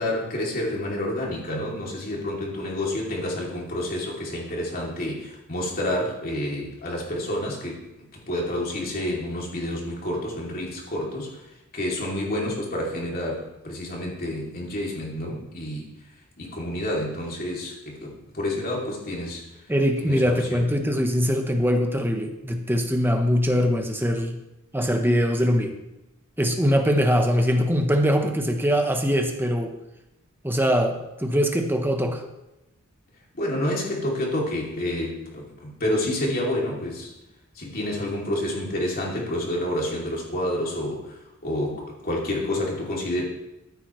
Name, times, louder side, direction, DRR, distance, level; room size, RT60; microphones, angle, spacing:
voice 1, 0.0-11.4 11.7-15.9 16.4-19.4 20.0-20.7 33.3-37.1 37.5-43.2, left 1 dB, 45° left, -3 dB, 2.9 m, -29 dB
voice 2, 19.7-24.4 24.7-25.8 26.4-29.8 30.4-32.2, equal, 10° right, 5 dB, 1.0 m, -22 dB
14.0 x 8.9 x 3.2 m, 0.94 s
head